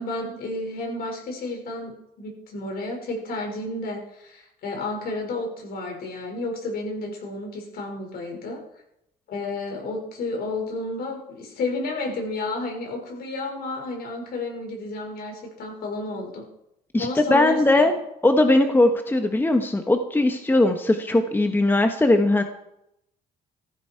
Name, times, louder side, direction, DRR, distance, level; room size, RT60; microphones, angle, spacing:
voice 1, 0.0-1.9 2.2-8.6 9.3-16.4 17.0-17.9, left 2 dB, 65° left, 1 dB, 5.7 m, -31 dB
voice 2, 16.9-17.9 18.2-22.4, left 2 dB, 10° left, 6 dB, 1.3 m, -19 dB
15.0 x 14.5 x 4.7 m, 0.79 s
cardioid pair, 110°, 17 cm